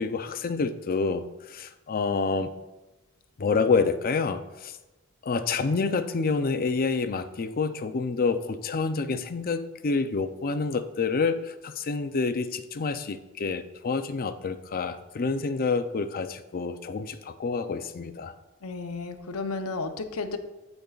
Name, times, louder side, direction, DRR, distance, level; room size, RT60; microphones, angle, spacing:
voice 1, 0.0-2.5 3.4-4.8 5.2-18.3, left 4 dB, 45° left, 10 dB, 0.5 m, -28 dB
voice 2, 18.6-20.4, left 3 dB, 80° left, 6 dB, 0.7 m, -33 dB
14.5 x 5.2 x 2.4 m, 1.1 s
head